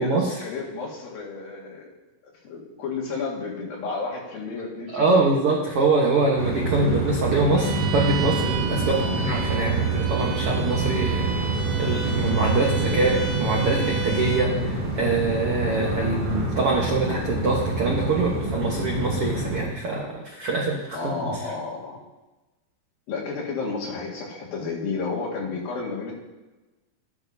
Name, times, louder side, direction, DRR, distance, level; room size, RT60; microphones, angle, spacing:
voice 1, 0.0-1.9 2.2-5.3 8.9-9.2 16.0-16.3 20.9-22.1 23.1-26.1, left 4 dB, 75° left, -3 dB, 3.5 m, -32 dB
voice 2, 4.9-11.3 11.8-21.3, right 3 dB, 75° right, -2 dB, 1.3 m, -24 dB
sound 1, 6.4-19.6, right 2 dB, 50° right, 4.0 m, -26 dB
Bowed string instrument, 7.6-14.6, right 7 dB, 90° right, 2.8 m, -34 dB
13.5 x 9.8 x 2.7 m, 1.1 s
omnidirectional pair, 4.2 m